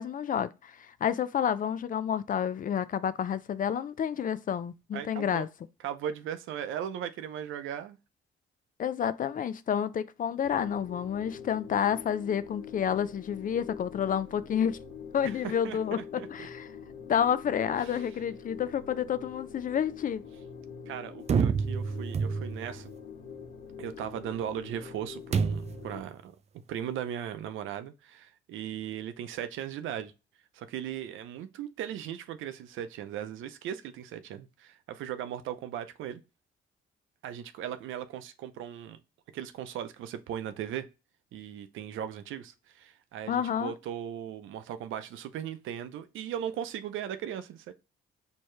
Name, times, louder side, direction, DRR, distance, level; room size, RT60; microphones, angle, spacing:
voice 1, 0.0-5.5 8.8-14.8 15.1-16.0 16.3-16.7 17.1-20.2 43.3-43.7, left 8 dB, 45° left, 0.4 m, -29 dB
voice 2, 4.9-5.5 5.8-8.0 15.2-15.4 15.6-16.5 17.8-18.0 20.9-22.9 23.8-26.4 26.7-30.1 30.5-36.2 37.2-39.0 39.3-40.9 41.3-47.7, right 10 dB, 85° right, 0.6 m, -38 dB
sound 1, 10.4-26.0, left 7 dB, 80° left, 1.2 m, -45 dB
sound 2, 21.3-22.8 25.3-25.9, right 6 dB, 35° right, 0.4 m, -28 dB
4.5 x 2.9 x 3.1 m
cardioid pair, 90°, 20 cm